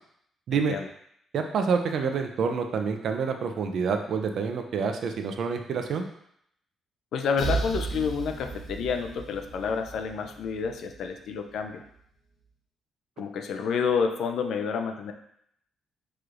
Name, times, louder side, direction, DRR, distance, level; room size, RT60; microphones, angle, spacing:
voice 1, 0.5-0.9 7.1-11.8 13.2-15.1, left 6 dB, 65° left, 5 dB, 0.4 m, -29 dB
voice 2, 1.3-6.1, right 5 dB, 55° right, 5 dB, 0.4 m, -27 dB
sound 1, 7.4-11.1, right 3 dB, 45° left, 1.3 m, -34 dB
4.7 x 3.1 x 2.5 m, 0.72 s
cardioid pair, 155°, 0 cm